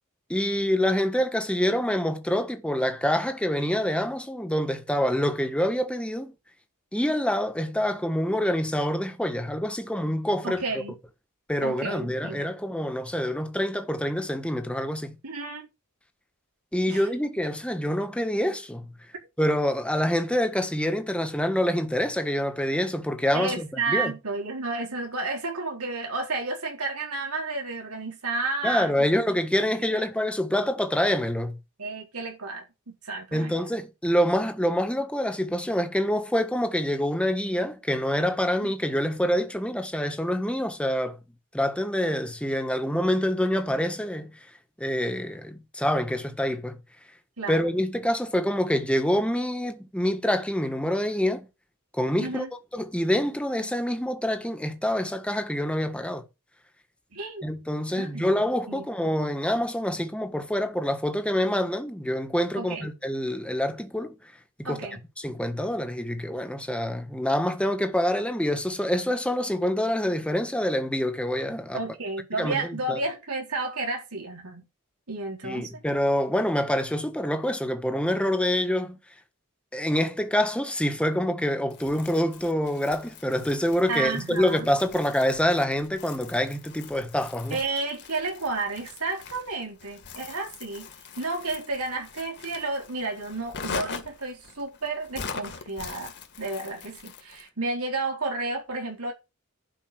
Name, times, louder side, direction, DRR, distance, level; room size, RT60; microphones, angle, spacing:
voice 1, 0.3-6.3 6.9-10.6 11.5-15.2 16.7-18.9 19.4-24.1 28.6-31.6 33.3-41.2 41.5-44.4 44.8-46.8 47.5-51.5 51.9-52.4 52.7-56.2 57.4-64.1 64.7-64.8 65.2-71.8 72.4-73.0 75.4-79.0 79.7-87.6, equal, 5° left, 1.5 m, -26 dB
voice 2, 10.4-11.0 11.6-12.5 15.2-15.7 16.9-17.1 23.3-29.1 29.9-30.0 31.8-33.5 38.6-38.7 47.4-47.6 52.2-52.5 57.1-57.5 57.9-58.3 58.7-59.1 62.5-62.9 64.6-65.0 71.7-74.6 75.1-75.8 83.9-84.7 87.5-90.9 91.2-96.1 96.4-99.1, right 3 dB, 85° right, 4.3 m, -32 dB
Crumpling crinkling, 81.7-97.5, left 5 dB, 55° left, 2.1 m, -42 dB
11.5 x 5.7 x 7.8 m
head